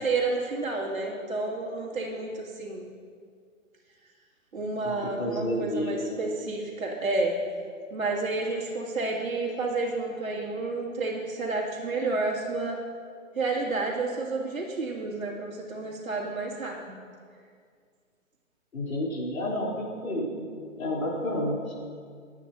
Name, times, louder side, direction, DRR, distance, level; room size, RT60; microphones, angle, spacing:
voice 1, 0.0-2.9 4.5-7.4 7.9-12.8 13.3-17.0, right 3 dB, 90° right, -3 dB, 2.4 m, -30 dB
voice 2, 4.8-6.2 18.7-20.5 20.8-21.6, left 1 dB, 85° left, -4 dB, 3.6 m, -30 dB
23.0 x 9.0 x 2.7 m, 2.1 s
hypercardioid pair, 145°, 40 cm